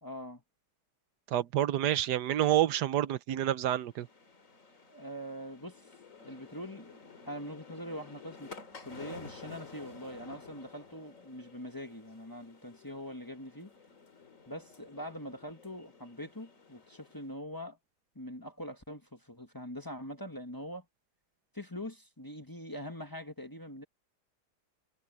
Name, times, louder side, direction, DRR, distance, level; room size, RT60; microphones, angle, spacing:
voice 1, 0.0-0.4 4.9-5.9 6.2-6.9 7.3-8.6 8.8-13.7 14.5-17.8 18.1-20.8 21.5-23.8, equal, 15° left, 1.3 m, -43 dB
voice 2, 1.3-4.1, right 12 dB, 80° right, 1.3 m, -28 dB
sound 1, 3.8-17.3, left 4 dB, 50° left, 2.8 m, -52 dB
omnidirectional pair, 1.8 m